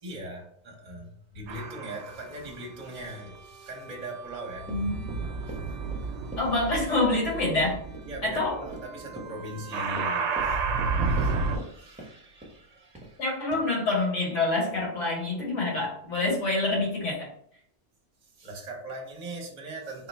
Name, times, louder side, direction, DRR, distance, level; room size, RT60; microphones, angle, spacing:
voice 1, 0.0-4.7 5.5-5.6 8.1-13.2 18.3-20.1, right 1 dB, 40° right, 0 dB, 0.9 m, -40 dB
sound 1, 1.5-2.2 3.0-11.6, right 4 dB, 75° right, 0.8 m, -32 dB
Run, 4.6-11.7 12.0-12.6 12.9-13.2 13.5-13.6, right 1 dB, 5° right, 0.8 m, -43 dB
voice 2, 4.7-5.0 6.4-7.8 8.2-8.6 13.2-17.3, left 2 dB, 80° left, -4 dB, 1.7 m, -26 dB
3.6 x 2.2 x 4.1 m, 0.64 s
omnidirectional pair, 1.2 m